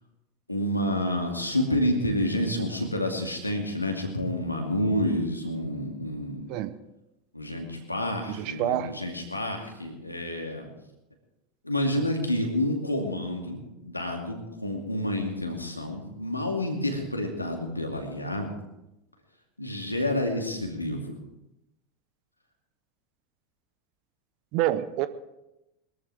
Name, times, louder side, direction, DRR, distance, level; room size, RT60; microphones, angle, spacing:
voice 1, 0.5-6.5 7.3-10.6 11.6-18.5 19.6-21.0, left 1 dB, 90° left, 2 dB, 2.4 m, -29 dB
voice 2, 8.3-8.9 24.5-25.1, right 13 dB, 50° right, 13 dB, 0.9 m, -27 dB
21.5 x 14.0 x 3.5 m, 0.92 s
figure-of-eight pair, 80°, 0 cm